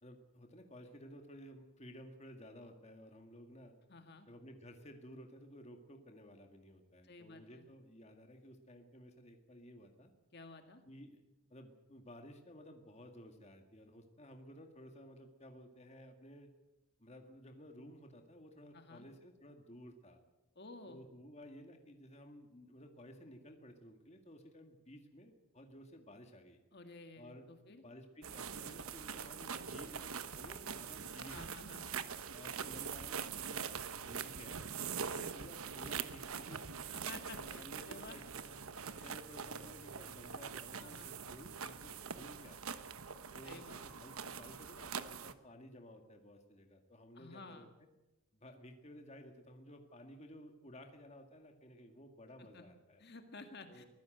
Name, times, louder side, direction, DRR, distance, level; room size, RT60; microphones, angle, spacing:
voice 1, 0.0-3.7 4.3-10.1 10.8-11.2 11.5-16.5 17.0-20.2 20.9-26.6 27.2-31.7 32.3-34.7 35.1-36.8 37.3-38.6 39.0-42.8 43.3-47.9 48.3-53.0 53.7-53.9, equal, 30° left, 4 dB, 2.0 m, -55 dB
voice 2, 3.9-4.3 7.0-7.7 10.3-10.8 18.7-19.1 20.6-21.1 26.7-27.8 31.3-32.2 35.2-35.5 36.9-38.2 39.0-39.1 40.8-41.2 43.4-43.8 47.1-47.7 52.4-52.7 53.0-53.9, left 3 dB, 50° left, 6 dB, 2.0 m, -53 dB
sound 1, 28.2-45.3, right 6 dB, 80° right, 1.2 m, -44 dB
23.5 x 15.5 x 7.9 m, 1.0 s
head